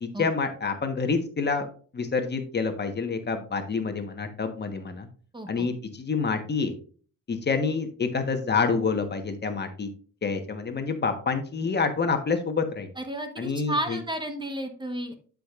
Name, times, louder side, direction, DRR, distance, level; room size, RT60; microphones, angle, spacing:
voice 1, 0.0-1.7 1.9-5.1 5.5-6.7 7.3-9.9 10.2-12.9 13.4-14.0, left 4 dB, 35° left, 6 dB, 1.3 m, -27 dB
voice 2, 5.3-5.7 13.0-15.1, right 1 dB, 15° right, 6 dB, 1.2 m, -32 dB
11.0 x 5.2 x 2.5 m, 0.41 s
cardioid pair, 90°, 30 cm